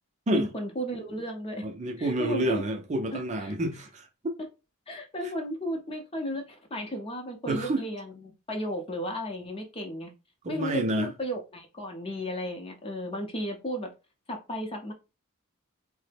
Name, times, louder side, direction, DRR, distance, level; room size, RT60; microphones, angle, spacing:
voice 1, 0.3-1.7 2.0-2.7 3.1-3.5 4.9-10.1 10.5-13.9 14.3-14.9, equal, 25° left, 0.6 m, -34 dB
voice 2, 1.6-4.4 7.5-7.8 10.4-11.1, right 1 dB, 30° right, 0.5 m, -29 dB
3.2 x 2.0 x 3.3 m
head